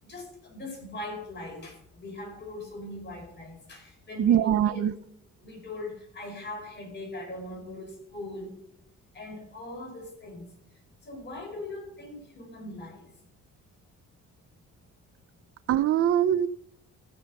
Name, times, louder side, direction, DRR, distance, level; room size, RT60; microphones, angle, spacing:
voice 1, 0.0-4.8 5.4-8.6 9.1-10.5 11.0-13.1, left 2 dB, 35° left, 0 dB, 5.3 m, -40 dB
voice 2, 4.2-4.9 15.7-16.5, right 10 dB, 50° right, 16 dB, 0.5 m, -22 dB
15.5 x 6.5 x 5.2 m, 0.72 s
cardioid pair, 90°, 30 cm